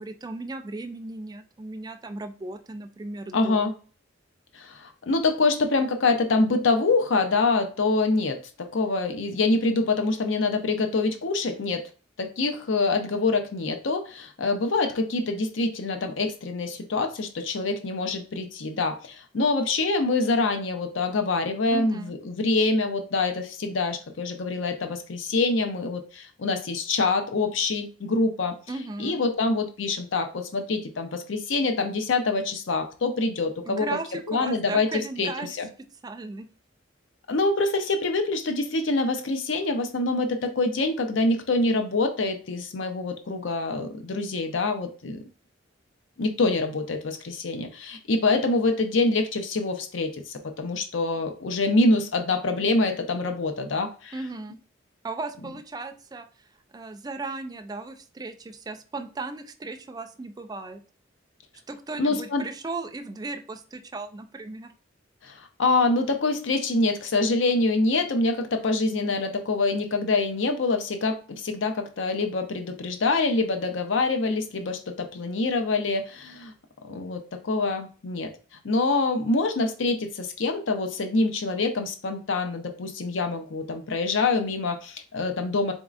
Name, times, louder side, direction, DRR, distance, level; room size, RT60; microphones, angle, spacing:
voice 1, 0.0-3.7 21.7-22.1 28.7-29.2 33.6-35.6 36.0-36.5 54.1-54.6 55.0-56.5 56.7-60.8 61.7-64.7, right 3 dB, 20° right, 6 dB, 0.4 m, -36 dB
voice 2, 3.3-3.7 4.5-11.8 12.2-28.6 29.0-33.9 34.3-34.9 35.2-35.7 37.3-45.2 46.2-54.1 62.0-62.5 65.2-76.5 76.9-78.3 78.6-85.7, left 3 dB, 70° left, 6 dB, 0.6 m, -25 dB
4.0 x 3.6 x 2.4 m, 0.37 s
head